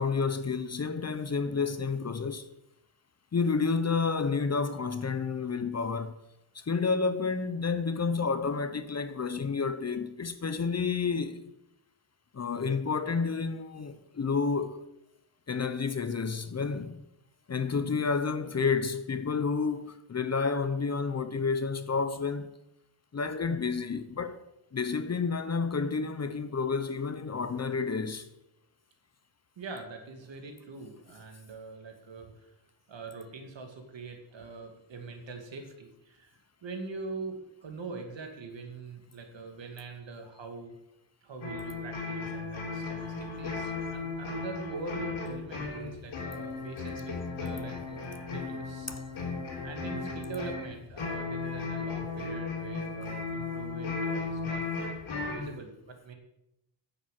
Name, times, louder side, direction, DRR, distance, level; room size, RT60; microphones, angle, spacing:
voice 1, 0.0-2.5 3.3-6.2 6.5-11.4 12.3-14.8 15.5-17.0 17.5-22.5 23.1-24.4 24.7-28.3 48.9-49.0, left 5 dB, 35° left, 0.8 m, -30 dB
voice 2, 29.6-32.5 32.9-40.8 41.2-48.9 49.6-54.6 55.1-56.1, right 4 dB, 65° right, 2.4 m, -43 dB
sound 1, 41.4-55.5, left 4 dB, 80° left, 3.4 m, -36 dB
9.9 x 7.7 x 7.6 m
wide cardioid pair, 140°, 47 cm